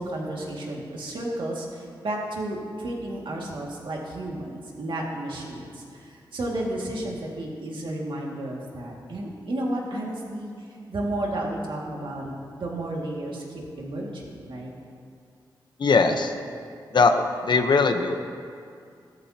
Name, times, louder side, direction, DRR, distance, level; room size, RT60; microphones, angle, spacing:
voice 1, 0.0-14.7, right 1 dB, 80° right, -2 dB, 2.1 m, -32 dB
voice 2, 15.8-16.3 16.9-18.2, left 4 dB, 65° left, 6 dB, 0.9 m, -20 dB
18.0 x 13.5 x 2.9 m, 2.3 s
wide cardioid pair, 105°, 8 cm